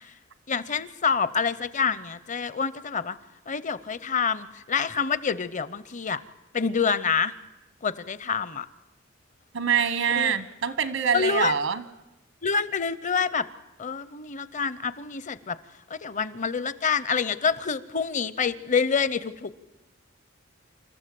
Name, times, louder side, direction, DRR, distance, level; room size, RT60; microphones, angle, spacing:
voice 1, 0.5-3.2 3.5-6.2 6.5-7.3 7.8-8.7 10.2-10.4 11.1-11.5 12.4-13.5 13.8-15.6 15.9-19.5, left 6 dB, 40° left, 17 dB, 0.7 m, -27 dB
voice 2, 9.5-11.8, right 7 dB, 85° right, 14 dB, 1.1 m, -25 dB
28.0 x 14.0 x 7.7 m, 1.0 s
head